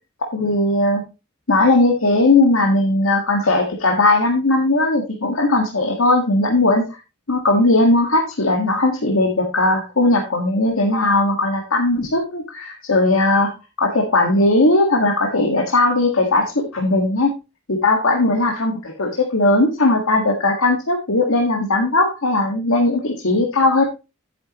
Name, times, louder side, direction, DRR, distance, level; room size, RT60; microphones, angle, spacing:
voice 1, 0.3-1.0 1.5-7.0 7.3-13.5 13.8-17.3 17.7-23.8, left 2 dB, 80° left, 1 dB, 1.7 m, -18 dB
10.5 x 9.5 x 3.0 m, 0.28 s
head